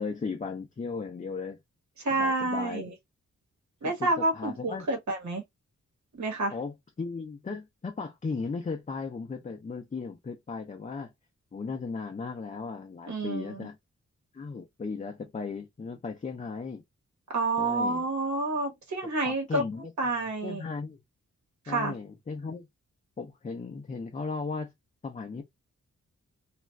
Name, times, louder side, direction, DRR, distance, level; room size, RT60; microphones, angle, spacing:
voice 1, 0.0-1.6 2.2-3.0 3.8-4.9 6.5-11.1 11.5-13.8 14.3-16.8 17.6-18.1 19.2-19.9 20.4-21.0 21.7-22.7 23.2-24.7 25.0-25.4, left 4 dB, 25° left, 0.5 m, -36 dB
voice 2, 2.0-2.9 3.8-5.4 6.2-6.5 13.1-13.7 17.3-19.6 20.0-20.6 21.7-21.9, right 2 dB, 70° right, 1.1 m, -29 dB
2.4 x 2.2 x 3.1 m
wide cardioid pair, 110°, 30 cm